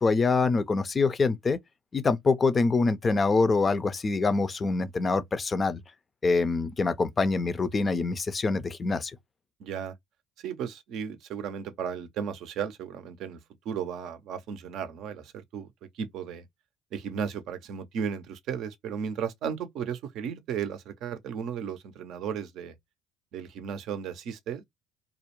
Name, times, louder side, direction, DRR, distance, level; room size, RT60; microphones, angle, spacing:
voice 1, 0.0-1.6 1.9-5.8 6.2-9.1, left 4 dB, 30° left, 0.4 m, -25 dB
voice 2, 9.6-9.9 10.4-13.4 13.6-16.5 16.9-22.7 23.3-24.6, right 7 dB, 65° right, 0.5 m, -35 dB
2.4 x 2.1 x 2.9 m
hypercardioid pair, 70°, 0 cm